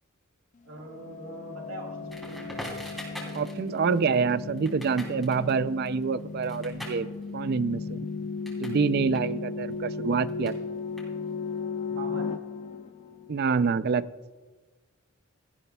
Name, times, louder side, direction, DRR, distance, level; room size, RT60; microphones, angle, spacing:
voice 1, 0.6-2.5 11.8-12.3, right 2 dB, 85° right, 1 dB, 2.7 m, -42 dB
sound 1, 0.9-13.6, left 4 dB, 35° left, 0.3 m, -36 dB
Crackle, 2.1-8.8 9.1-11.5, equal, ahead, 3.1 m, -44 dB
voice 2, 3.3-7.1 7.3-8.0 8.6-10.6 13.3-14.1, right 5 dB, 50° right, 16 dB, 0.4 m, -26 dB
17.0 x 13.5 x 2.3 m, 1.2 s
head